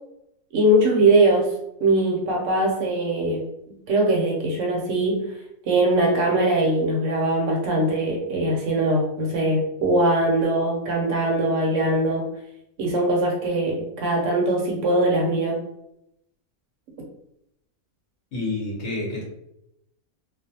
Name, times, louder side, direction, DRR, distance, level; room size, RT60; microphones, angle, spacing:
voice 1, 0.5-1.5 1.8-5.2 5.6-12.3 12.8-15.6, right 1 dB, 70° right, -1 dB, 0.9 m, -21 dB
voice 2, 18.3-19.2, left 2 dB, 60° left, -4 dB, 0.9 m, -28 dB
2.4 x 2.1 x 2.7 m, 0.80 s
omnidirectional pair, 1.5 m